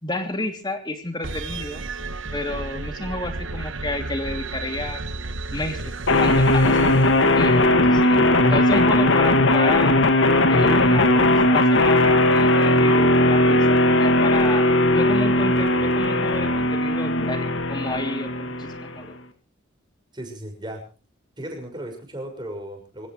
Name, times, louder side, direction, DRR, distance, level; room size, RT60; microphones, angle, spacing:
voice 1, 0.0-1.8 2.3-5.0 5.5-8.2 8.5-10.0 10.5-14.6 14.9-19.1, left 2 dB, 20° left, 5 dB, 3.0 m, -31 dB
sound 1, 1.2-7.8, right 3 dB, 65° right, 1.3 m, -33 dB
sound 2, 6.1-19.1, left 1 dB, 65° left, 2.0 m, -18 dB
voice 2, 20.1-20.8 21.4-23.1, right 1 dB, 20° right, 3 dB, 6.3 m, -35 dB
25.5 x 16.0 x 3.3 m, 0.36 s
head